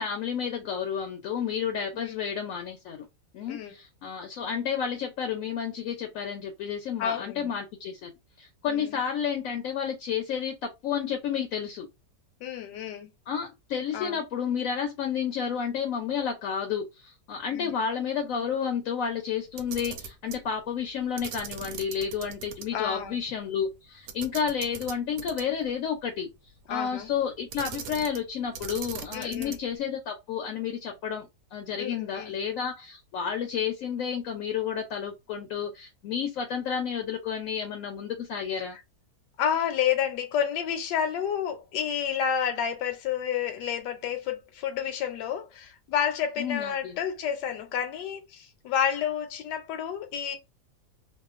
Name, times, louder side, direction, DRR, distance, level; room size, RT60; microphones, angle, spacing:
voice 1, 0.0-3.1 3.3-8.1 8.4-11.9 13.3-26.3 26.7-38.8 46.4-47.0, left 7 dB, 70° left, 0.8 m, -31 dB
voice 2, 7.0-7.5 8.6-8.9 12.4-13.1 13.9-14.2 17.5-17.7 22.7-23.2 26.7-27.1 29.1-29.5 31.8-32.3 39.4-50.4, left 8 dB, 85° left, 1.2 m, -30 dB
Camera, 19.5-20.4 21.2-22.7 23.0-23.1 24.1-25.7 27.5-28.3 28.5-29.7, right 7 dB, 90° right, 1.2 m, -40 dB
2.8 x 2.2 x 2.4 m
omnidirectional pair, 1.8 m